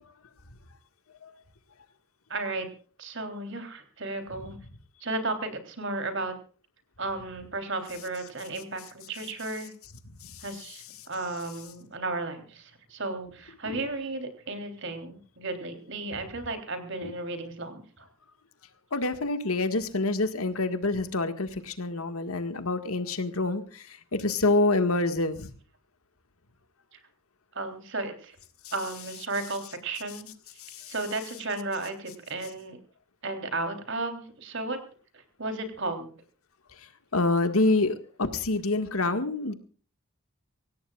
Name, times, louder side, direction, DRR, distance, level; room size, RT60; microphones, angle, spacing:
voice 1, 2.3-2.7 3.0-4.6 5.0-6.4 7.0-9.7 10.4-18.1 26.9-27.0 27.5-28.4 28.7-30.3 30.9-32.8 33.2-34.8 35.1-36.1, right 2 dB, 55° right, 7 dB, 3.5 m, -34 dB
voice 2, 18.9-23.6 24.1-25.5 37.1-39.5, left 2 dB, 80° left, 8 dB, 1.8 m, -26 dB
24.5 x 17.0 x 2.4 m, 0.39 s
head